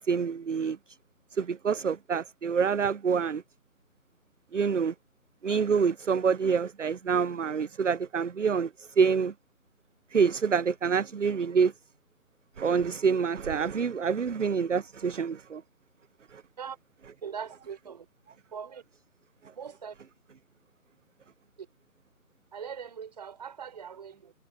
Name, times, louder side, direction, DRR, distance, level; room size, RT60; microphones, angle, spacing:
voice 1, 0.1-0.8 1.3-3.4 4.5-4.9 5.4-9.3 10.1-11.7 12.6-15.6 16.3-16.4, right 6 dB, 55° right, 0.6 m, -26 dB
voice 2, 17.2-18.1 18.5-18.8 19.6-20.0 21.6-21.7 22.5-24.3, right 7 dB, 30° right, 5.5 m, -40 dB
figure-of-eight pair, 170°, 45 cm